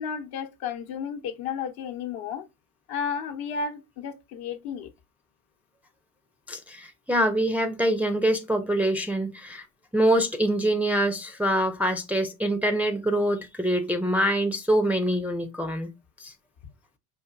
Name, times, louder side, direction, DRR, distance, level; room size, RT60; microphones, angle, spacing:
voice 1, 0.0-2.4 2.9-4.9, left 6 dB, 60° left, 0.9 m, -33 dB
voice 2, 6.5-9.6 9.9-15.9 16.2-16.3, right 1 dB, 5° right, 0.4 m, -25 dB
4.9 x 2.5 x 2.3 m
hypercardioid pair, 80°, 42 cm